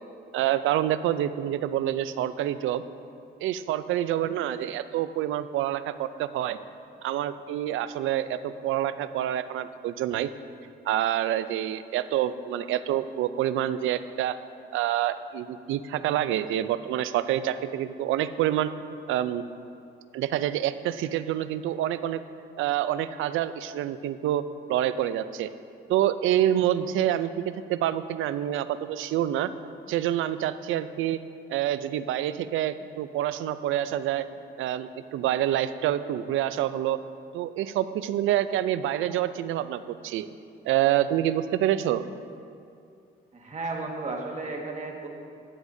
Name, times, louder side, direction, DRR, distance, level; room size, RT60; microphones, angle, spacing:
voice 1, 0.3-2.8 3.4-6.6 7.0-10.3 10.9-14.4 14.7-18.7 19.1-19.4 20.1-22.2 22.6-24.4 24.7-25.5 25.9-29.5 29.9-31.2 31.5-34.3 34.6-37.0 37.3-40.3 40.6-42.0, right 12 dB, 85° right, 13 dB, 0.4 m, -27 dB
voice 2, 43.3-45.1, right 3 dB, 35° right, 0 dB, 1.7 m, -34 dB
14.5 x 9.7 x 2.7 m, 2.5 s
cardioid pair, 90°, 20 cm